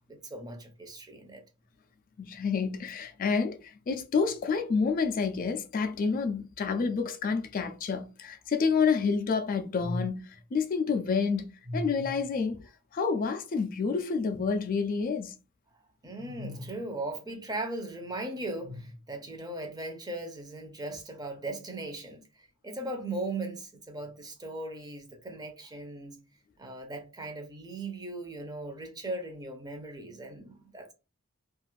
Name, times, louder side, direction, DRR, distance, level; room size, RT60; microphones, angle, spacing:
voice 1, 0.1-1.4 9.8-10.0 11.7-12.2 16.0-26.2 26.6-30.9, right 1 dB, 20° right, 0.6 m, -38 dB
voice 2, 2.2-12.6 12.9-15.4, left 5 dB, 40° left, 0.3 m, -29 dB
2.5 x 2.4 x 3.1 m
head